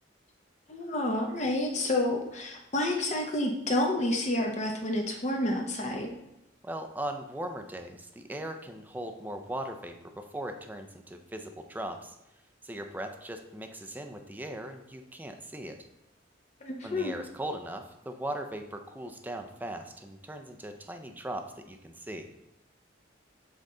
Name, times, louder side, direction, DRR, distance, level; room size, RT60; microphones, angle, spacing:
voice 1, 0.7-6.1 16.6-17.1, left 1 dB, 35° left, 1 dB, 0.8 m, -29 dB
voice 2, 6.6-12.2 12.6-15.8 16.8-22.3, right 1 dB, 10° right, 5 dB, 0.5 m, -39 dB
7.4 x 3.9 x 3.8 m, 0.89 s
head